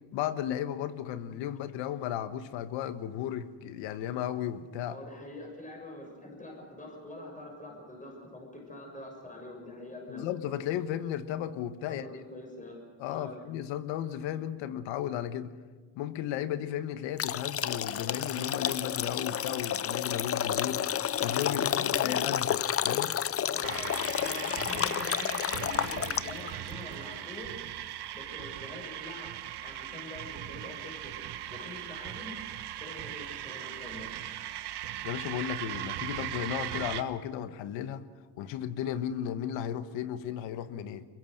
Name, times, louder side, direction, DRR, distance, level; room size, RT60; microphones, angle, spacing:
voice 1, 0.1-5.0 10.1-12.0 13.0-15.5 15.9-20.8 21.2-23.1 35.0-38.0 38.4-41.1, left 10 dB, 80° left, 11 dB, 1.5 m, -34 dB
voice 2, 4.8-10.2 11.9-12.8 13.1-13.4 21.5-22.2 23.5-27.6 28.1-29.3 29.6-31.1 31.5-32.4 32.8-34.1, left 1 dB, 15° left, 1 dB, 6.8 m, -45 dB
sound 1, 17.2-26.5, left 10 dB, 30° left, 0.6 m, -30 dB
sound 2, 23.6-37.0, right 12 dB, 60° right, 1.5 m, -39 dB
24.0 x 22.0 x 6.7 m, 1.4 s
cardioid pair, 100°, 44 cm